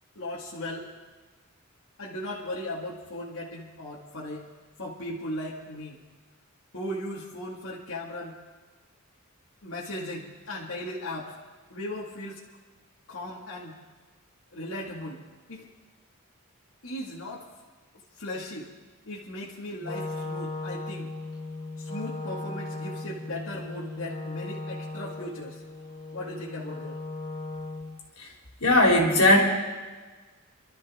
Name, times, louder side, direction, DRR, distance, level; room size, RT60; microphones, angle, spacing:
voice 1, 0.2-0.9 2.0-4.4 4.8-6.0 6.7-8.4 9.6-11.4 11.7-12.4 13.1-13.8 14.5-15.2 15.5-15.7 16.8-17.5 18.2-18.7 19.1-21.1 21.8-25.6 26.1-27.0, left 1 dB, 70° left, -6 dB, 2.1 m, -37 dB
Wind instrument woodwind instrument, 19.8-28.0, left 2 dB, 20° left, 1.7 m, -37 dB
voice 2, 28.6-29.5, left 1 dB, 85° left, 0 dB, 3.1 m, -19 dB
27.0 x 13.0 x 3.7 m, 1.4 s
head